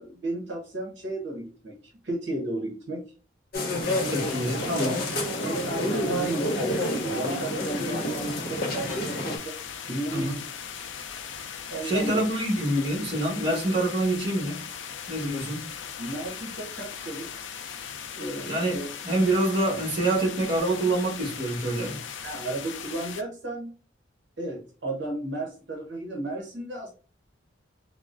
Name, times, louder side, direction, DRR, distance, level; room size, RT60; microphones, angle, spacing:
voice 1, 0.0-1.7 2.0-3.0 5.4-9.5 9.9-10.5 11.7-12.2 16.0-17.3 18.1-18.9 22.2-23.7 24.4-26.9, right 2 dB, 65° right, 0.8 m, -33 dB
sound 1, 3.5-9.4, left 1 dB, 55° left, 0.8 m, -29 dB
sound 2, 3.8-23.2, left 7 dB, 75° left, 0.4 m, -39 dB
voice 2, 3.9-5.2 10.1-10.3 11.8-14.6 15.1-15.7 18.5-18.8 19.0-22.0, right 1 dB, 30° right, 1.2 m, -26 dB
3.6 x 2.0 x 2.4 m
head